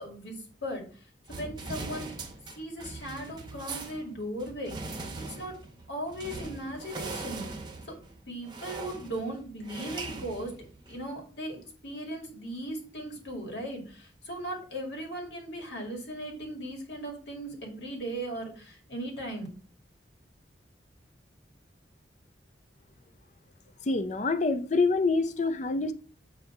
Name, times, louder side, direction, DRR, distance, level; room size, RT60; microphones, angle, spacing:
voice 1, 0.0-2.1 2.5-5.0 5.3-5.6 5.9-7.6 8.3-10.5 10.9-19.5, right 1 dB, 75° left, 2.1 m, -38 dB
sound 1, 1.3-11.1, right 3 dB, 25° right, 0.8 m, -41 dB
voice 2, 23.8-25.9, left 3 dB, 40° left, 0.4 m, -26 dB
7.8 x 2.7 x 5.7 m
head